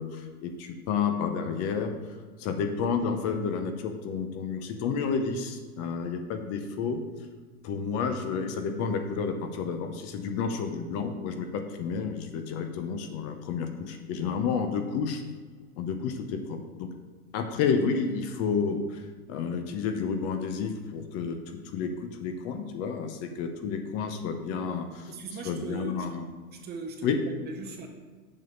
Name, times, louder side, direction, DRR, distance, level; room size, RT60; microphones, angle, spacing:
voice 1, 0.0-2.0 2.4-7.0 7.6-15.2 15.8-16.9 17.3-19.0 19.3-25.1 25.4-26.2 27.0-27.2, left 6 dB, 35° left, 6 dB, 0.9 m, -30 dB
voice 2, 25.0-26.1 26.5-27.9, right 4 dB, 20° right, 4 dB, 0.7 m, -39 dB
7.4 x 6.3 x 5.2 m, 1.5 s
hypercardioid pair, 135°, 44 cm